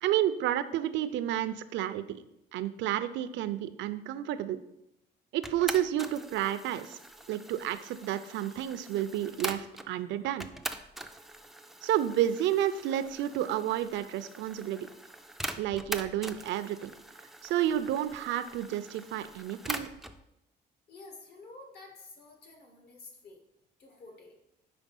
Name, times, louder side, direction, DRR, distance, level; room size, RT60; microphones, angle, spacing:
voice 1, 0.0-2.2 2.5-4.6 5.3-7.0 7.3-10.5 11.8-14.9 15.6-16.9 17.4-19.9, right 11 dB, 85° right, 12 dB, 0.5 m, -31 dB
sound 1, 5.4-9.9 10.4-20.2, right 1 dB, ahead, 0.3 m, -43 dB
voice 2, 20.9-23.4 23.8-24.3, left 3 dB, 60° left, 3 dB, 1.4 m, -50 dB
5.1 x 4.8 x 5.3 m, 0.84 s
cardioid pair, 130°, 19 cm